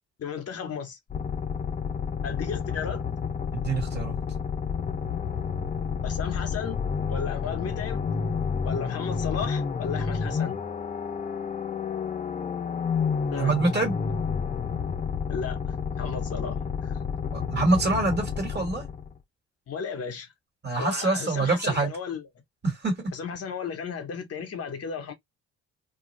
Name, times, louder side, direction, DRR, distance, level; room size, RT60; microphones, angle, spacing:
voice 1, 0.2-1.0 2.2-3.0 6.0-6.8 7.1-8.0 8.6-10.6 13.3-13.5 15.3-17.0 19.7-20.3 20.8-22.3 23.1-25.1, left 6 dB, 55° left, 0.8 m, -34 dB
sound 1, 1.1-19.2, left 6 dB, 25° left, 0.5 m, -30 dB
voice 2, 3.5-4.2 13.3-14.0 17.3-18.9 20.6-21.9 22.6-22.9, right 3 dB, 35° right, 1.4 m, -25 dB
2.3 x 2.3 x 3.0 m
cardioid pair, 90°, 30 cm